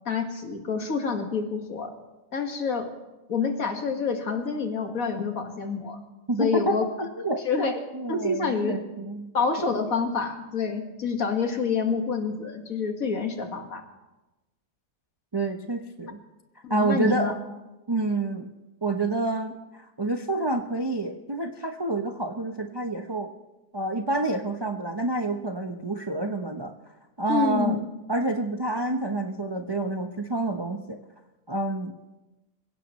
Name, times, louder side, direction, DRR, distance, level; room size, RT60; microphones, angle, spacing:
voice 1, 0.1-1.9 2.3-2.9 3.3-6.0 6.4-6.9 7.5-7.8 8.1-8.8 9.3-13.8 16.6-17.3 27.3-27.8, left 5 dB, 55° left, 4 dB, 2.1 m, -27 dB
voice 2, 6.3-6.9 7.2-7.4 7.9-9.3 15.3-16.2 16.7-17.3 17.9-18.5 18.8-23.3 23.7-26.7 27.2-27.8 28.1-31.0 31.5-31.9, right 2 dB, 35° right, 4 dB, 0.3 m, -28 dB
26.5 x 16.5 x 3.1 m, 1.1 s
omnidirectional pair, 1.8 m